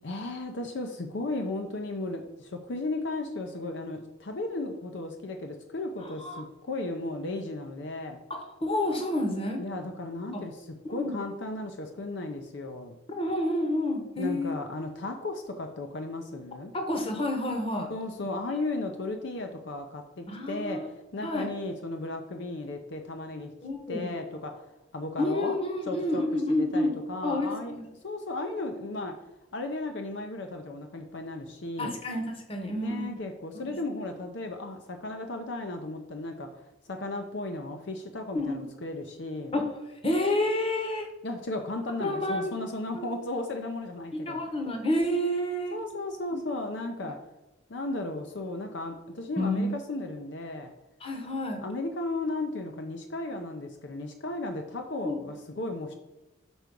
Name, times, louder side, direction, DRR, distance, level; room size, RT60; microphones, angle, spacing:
voice 1, 0.0-8.2 9.6-13.0 14.2-16.7 17.9-23.5 23.9-24.7 24.9-25.6 25.9-26.2 26.5-27.7 28.0-29.2 29.5-31.9 32.7-36.6 36.9-39.5 41.2-44.4 45.7-47.2 47.7-50.7 51.6-55.9, left 2 dB, 65° left, 4 dB, 0.6 m, -35 dB
voice 2, 6.0-6.4 8.3-9.6 10.3-10.5 10.8-11.2 13.1-14.6 16.7-17.9 20.3-20.9 21.2-21.5 23.6-24.1 25.2-26.9 27.2-27.9 31.8-33.1 33.7-33.8 38.3-38.6 39.5-39.7 40.0-41.1 42.0-42.5 43.0-43.1 44.1-45.8 46.3-46.4 47.0-47.1 49.4-49.7 51.0-51.6 55.0-55.2, left 1 dB, 30° left, 4 dB, 1.0 m, -29 dB
6.1 x 4.7 x 5.2 m, 0.98 s
head